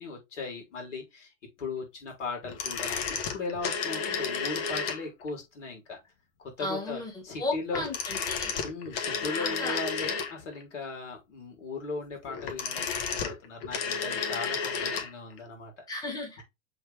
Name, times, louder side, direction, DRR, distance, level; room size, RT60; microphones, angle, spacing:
voice 1, 0.0-1.3 1.6-3.0 3.3-6.0 6.4-7.9 8.6-15.8 16.4-16.5, left 3 dB, 65° left, 3.7 m, -38 dB
sound 1, 2.4-5.3 7.7-10.6 12.3-15.1 15.4-15.5, left 6 dB, 45° left, 1.5 m, -32 dB
voice 2, 6.6-8.5 9.2-9.8 15.9-16.4, left 2 dB, 10° left, 2.0 m, -35 dB
7.1 x 3.8 x 3.5 m
figure-of-eight pair, 95°, 39 cm